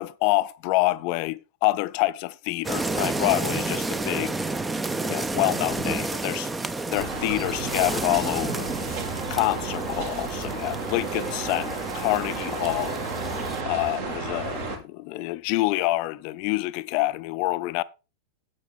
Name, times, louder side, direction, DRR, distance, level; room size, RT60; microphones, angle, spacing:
voice 1, 0.0-4.3 5.1-6.5 6.9-8.7 9.3-13.0 13.6-17.8, left 19 dB, 45° left, 0.5 m, -27 dB
sound 1, 2.6-13.6, right 3 dB, 10° right, 0.6 m, -31 dB
sound 2, 6.9-14.8, right 4 dB, 55° right, 2.4 m, -33 dB
9.4 x 8.0 x 3.5 m
figure-of-eight pair, 90°, 0 cm